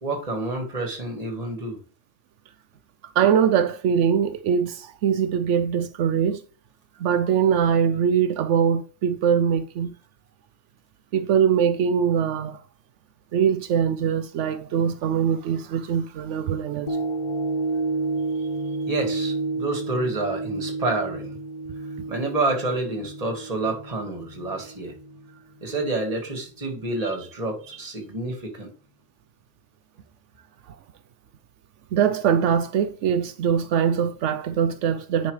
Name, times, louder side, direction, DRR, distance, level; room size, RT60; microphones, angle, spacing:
voice 1, 0.0-1.8 18.9-21.4 22.1-24.9 25.6-28.7, right 2 dB, 30° right, 1.9 m, -28 dB
voice 2, 3.1-6.4 7.0-9.9 11.1-12.6 13.3-17.0 30.7-30.8 31.9-35.3, right 8 dB, 75° right, 0.9 m, -22 dB
sound 1, 16.9-25.3 25.8-25.9, right 3 dB, 55° left, 0.4 m, -30 dB
9.9 x 5.4 x 3.2 m
omnidirectional pair, 1.3 m